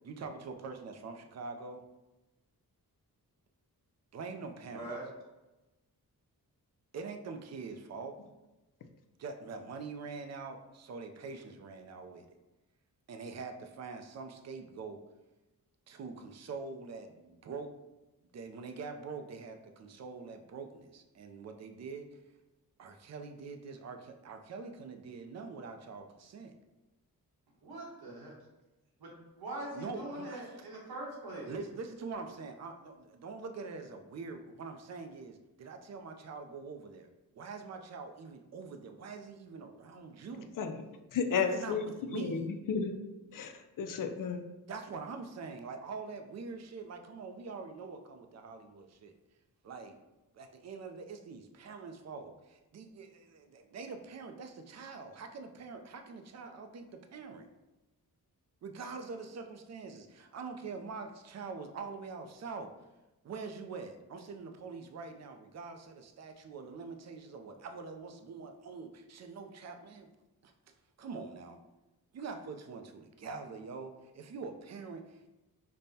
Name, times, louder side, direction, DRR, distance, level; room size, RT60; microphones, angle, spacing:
voice 1, 0.0-1.9 4.1-4.9 6.9-8.2 9.2-12.3 13.1-15.0 15.9-17.7 18.3-22.1 22.8-26.5 29.7-30.6 31.5-37.1 37.3-40.5 41.3-42.5 44.7-49.1 49.6-50.0 50.3-57.5 58.6-62.7 63.2-70.1 70.4-71.6 72.1-75.3, right 4 dB, 45° right, 6 dB, 0.4 m, -44 dB
voice 2, 4.7-5.1 27.6-28.3 29.0-31.5, right 1 dB, 85° right, -3 dB, 1.1 m, -42 dB
voice 3, 41.1-42.9 43.3-44.4, left 6 dB, 60° left, 6 dB, 0.5 m, -33 dB
5.2 x 2.1 x 2.7 m, 1.0 s
wide cardioid pair, 100°, 36 cm